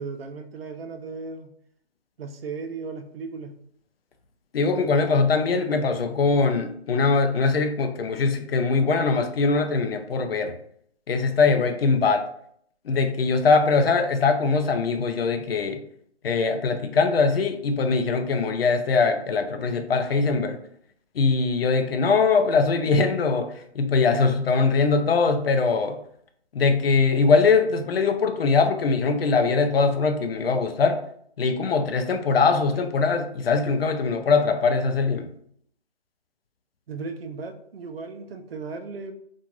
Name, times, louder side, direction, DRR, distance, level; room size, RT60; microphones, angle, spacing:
voice 1, 0.0-1.5 2.2-3.5 36.9-39.1, right 4 dB, 65° right, 7 dB, 0.5 m, -36 dB
voice 2, 4.5-10.5 11.1-12.3 12.9-15.8 16.2-20.6 21.2-26.0 26.5-31.0 31.4-35.3, left 4 dB, 65° left, 7 dB, 0.5 m, -22 dB
2.9 x 2.5 x 2.4 m, 0.66 s
hypercardioid pair, 155°, 33 cm